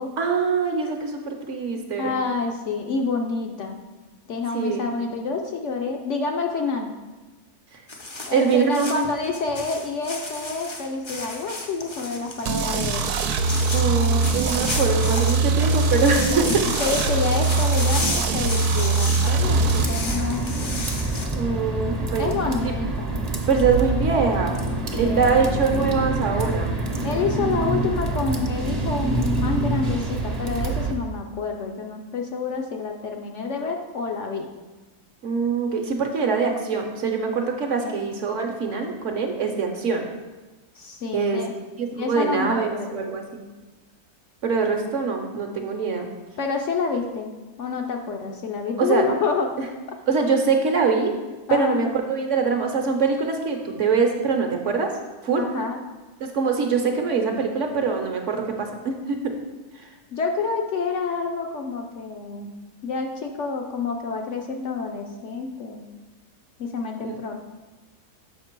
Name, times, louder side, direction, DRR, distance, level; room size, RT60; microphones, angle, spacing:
voice 1, 0.2-2.2 4.5-4.9 8.3-9.1 13.7-16.6 21.3-22.4 22.6-22.7 23.5-24.6 25.0-26.7 35.2-40.1 41.1-41.4 41.8-43.5 44.4-46.1 48.8-49.1 50.1-51.2 51.5-55.0 55.2-55.4 56.2-59.3 67.0-67.2, right 5 dB, 60° right, 3 dB, 1.0 m, -23 dB
voice 2, 2.0-3.8 4.3-6.9 8.3-13.1 16.1-20.8 22.2-23.2 24.9-25.4 27.0-34.5 37.8-38.1 40.7-41.5 42.0-43.1 46.4-49.5 51.5-51.8 55.4-55.8 60.1-62.5 62.8-65.8 66.6-67.3, left 4 dB, 65° left, 2 dB, 0.8 m, -28 dB
sound 1, 7.9-21.2, left 2 dB, 40° left, 0.4 m, -33 dB
sound 2, 12.5-19.8, right 4 dB, 80° right, 1.1 m, -22 dB
sound 3, 19.4-30.9, right 2 dB, 35° right, 0.7 m, -26 dB
6.5 x 5.5 x 4.5 m, 1.2 s
omnidirectional pair, 1.6 m